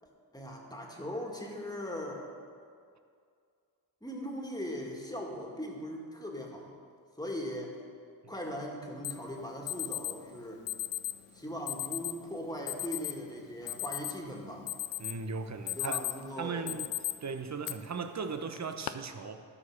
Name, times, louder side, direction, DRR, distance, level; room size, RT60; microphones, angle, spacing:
voice 1, 0.0-2.3 4.0-6.7 7.2-7.8 8.3-10.6 11.3-14.7 15.8-16.7, equal, 10° left, 0 dB, 2.1 m, -39 dB
Alarm, 9.0-9.1 9.7-10.1 10.7-11.2 11.7-12.1 12.7-13.1 13.5-14.3 14.7-15.2 15.5-16.2 16.7-17.1 17.6-17.7 18.5-18.9, left 15 dB, 85° left, 0.6 m, -35 dB
voice 2, 15.0-16.0 16.4-16.9 17.2-19.4, right 5 dB, 35° right, 8 dB, 0.9 m, -37 dB
13.0 x 4.8 x 6.6 m, 2.3 s
supercardioid pair, 50°, 48 cm